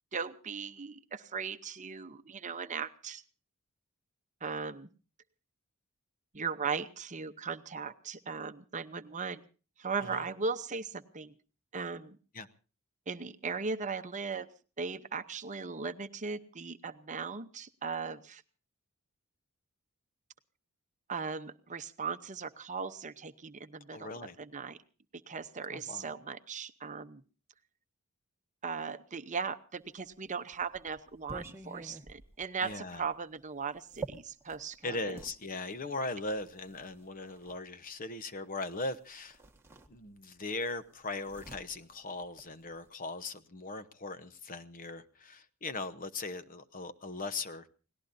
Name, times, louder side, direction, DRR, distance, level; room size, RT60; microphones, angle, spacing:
voice 1, 0.1-3.2 4.4-4.9 6.3-9.4 9.8-11.3 11.7-12.2 13.1-14.5 14.8-18.4 21.1-24.1 24.4-24.8 25.3-27.2 28.6-35.2, right 5 dB, 35° right, 10 dB, 0.8 m, -38 dB
voice 2, 23.9-24.4 25.7-26.1 32.6-33.0 34.8-39.4 39.9-47.7, left 3 dB, 40° left, 11 dB, 0.9 m, -39 dB
sound 1, 30.0-35.4 36.2-37.6 38.8-39.0 39.3-40.4 40.7-42.9, right 4 dB, 10° right, 1.5 m, -48 dB
29.5 x 18.5 x 2.7 m, 0.37 s
head